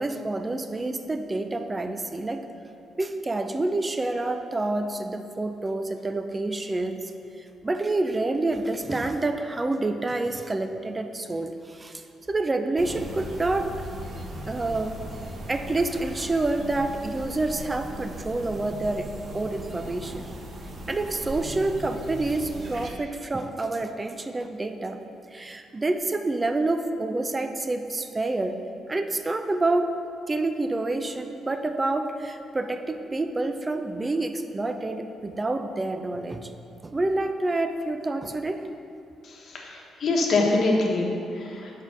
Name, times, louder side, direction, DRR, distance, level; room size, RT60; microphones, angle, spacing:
voice 1, 0.0-2.5 3.0-7.1 7.4-13.7 14.4-15.0 15.5-19.1 19.3-20.3 20.9-25.0 25.3-28.6 28.9-29.9 30.3-36.5 36.8-38.7, right 2 dB, 20° right, 8 dB, 0.4 m, -28 dB
sound 1, 12.8-22.9, right 1 dB, 45° right, 0.8 m, -38 dB
voice 2, 39.2-41.7, left 2 dB, 60° left, -1 dB, 1.1 m, -25 dB
5.3 x 4.4 x 5.9 m, 2.6 s
cardioid pair, 90°, 0 cm